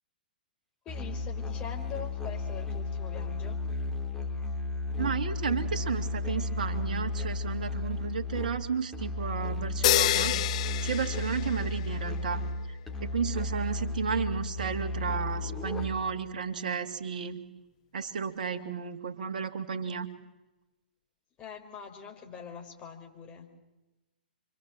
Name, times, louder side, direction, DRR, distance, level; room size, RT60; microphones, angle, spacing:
voice 1, 0.8-3.6 18.3-18.7 21.4-23.5, left 7 dB, 20° left, 2 dB, 5.0 m, -44 dB
Musical instrument, 0.9-16.2, left 2 dB, 5° left, 3.3 m, -34 dB
voice 2, 5.0-10.4 10.8-12.4 12.7-17.4 17.9-20.1, right 6 dB, 55° right, 6 dB, 2.3 m, -33 dB
sound 1, 9.8-12.0, left 14 dB, 40° left, 0.8 m, -28 dB
29.5 x 24.5 x 7.6 m, 1.1 s
figure-of-eight pair, 115°, 5 cm